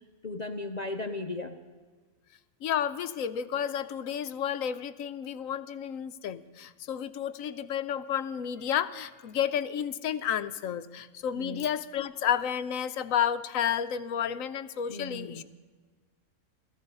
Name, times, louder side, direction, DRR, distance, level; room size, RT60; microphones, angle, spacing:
voice 1, 0.0-1.6 11.4-11.7 14.9-15.4, left 2 dB, 50° left, 6 dB, 0.5 m, -36 dB
voice 2, 2.6-15.4, left 9 dB, 70° left, 12 dB, 1.0 m, -31 dB
16.5 x 14.5 x 5.4 m, 1.4 s
omnidirectional pair, 1.6 m